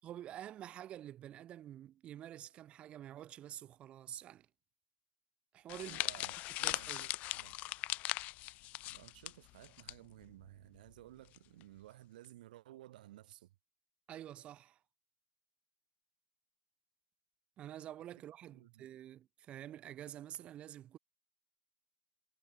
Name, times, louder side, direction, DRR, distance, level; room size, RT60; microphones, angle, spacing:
voice 1, 0.0-4.5 5.5-6.0 6.6-7.1 14.1-14.8 17.6-21.0, right 11 dB, 20° right, 5.4 m, -48 dB
sound 1, 5.7-9.9 10.2-10.5 11.3-11.6, left 19 dB, 25° left, 0.5 m, -39 dB
voice 2, 5.8-6.3 6.6-7.6 8.8-13.6 18.5-18.9, right 15 dB, 55° right, 7.1 m, -56 dB
supercardioid pair, 165°, 5 cm